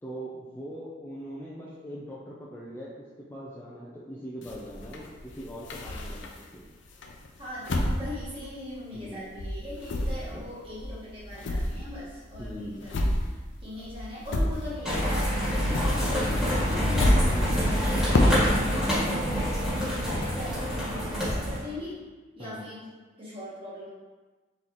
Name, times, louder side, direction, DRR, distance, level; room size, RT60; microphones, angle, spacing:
voice 1, 0.0-6.6 8.9-9.4 10.3-10.4 12.4-12.9 17.1-17.5 22.4-22.6, equal, 10° left, -6 dB, 0.5 m, -41 dB
sound 1, 4.4-6.6 7.0-9.1 9.4-15.1 15.3-18.7, left 1 dB, 80° left, 0.5 m, -29 dB
voice 2, 7.4-22.0 22.3-22.9 23.2-23.9, left 1 dB, 30° right, -8 dB, 1.4 m, -40 dB
sound 2, 14.8-21.6, equal, 5° right, 1.5 m, -26 dB
4.1 x 4.1 x 3.1 m, 1.3 s
head